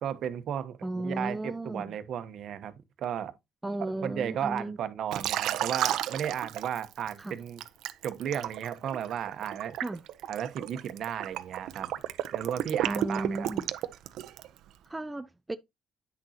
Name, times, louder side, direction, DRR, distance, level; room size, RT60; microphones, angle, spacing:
voice 1, 0.0-0.8 1.0-2.7 3.0-3.3 4.0-7.6 8.0-9.8 10.3-11.9 12.3-13.5, right 9 dB, 55° right, 1.0 m, -34 dB
voice 2, 0.8-1.9 3.6-4.8 7.2-7.4 9.8-10.0 12.8-13.6 14.9-15.6, right 2 dB, 10° right, 0.3 m, -34 dB
Liquid, 5.1-7.1 7.6-14.6, right 12 dB, 75° right, 0.7 m, -33 dB
9.5 x 6.3 x 2.9 m
cardioid pair, 145°, 0 cm